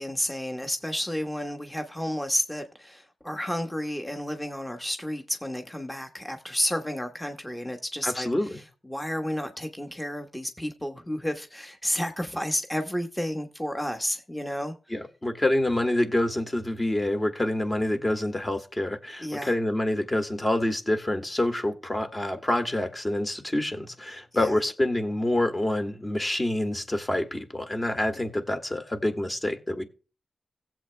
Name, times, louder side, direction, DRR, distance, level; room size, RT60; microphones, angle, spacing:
voice 1, 0.0-14.7 19.2-19.6 24.3-24.5, equal, 10° left, 1.1 m, -31 dB
voice 2, 8.0-8.6 14.9-29.8, left 1 dB, 30° left, 1.8 m, -27 dB
16.5 x 7.7 x 2.2 m
cardioid pair, 45°, 0 cm